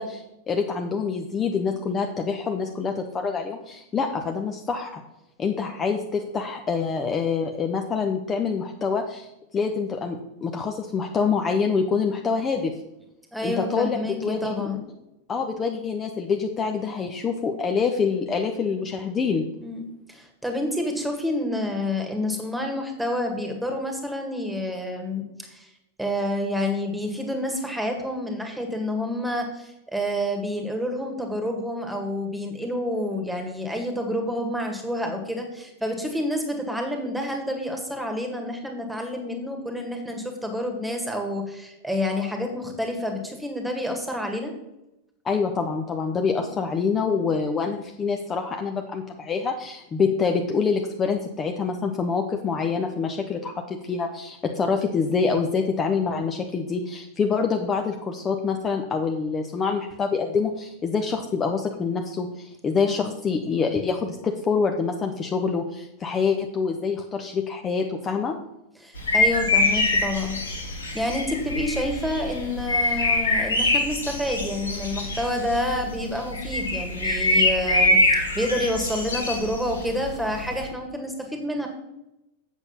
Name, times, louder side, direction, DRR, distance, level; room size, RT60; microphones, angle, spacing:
voice 1, 0.0-5.0 5.4-12.7 13.4-14.7 15.3-19.4 45.2-53.5 53.8-68.3, left 5 dB, 20° left, 4 dB, 0.8 m, -26 dB
voice 2, 13.3-14.8 19.6-25.7 26.0-44.5 46.3-46.5 62.8-63.1 68.8-81.7, left 1 dB, 5° right, 3 dB, 1.9 m, -29 dB
sound 1, 69.0-80.6, left 2 dB, 75° left, 2.2 m, -24 dB
8.2 x 6.6 x 5.6 m, 0.91 s
figure-of-eight pair, 90°, 0 cm